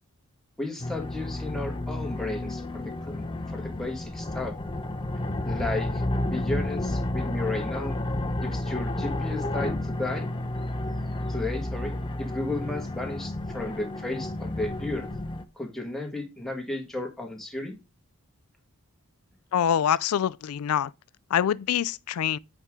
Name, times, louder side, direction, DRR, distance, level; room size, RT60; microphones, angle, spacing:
voice 1, 0.6-4.6 5.4-8.0 8.4-10.3 11.3-11.9 12.2-15.1 15.6-17.7, left 2 dB, ahead, 1.6 m, -34 dB
sound 1, 0.8-15.4, left 1 dB, 20° left, 0.7 m, -31 dB
voice 2, 19.5-20.9 21.3-22.4, left 9 dB, 75° left, 0.3 m, -25 dB
8.2 x 4.7 x 3.6 m
head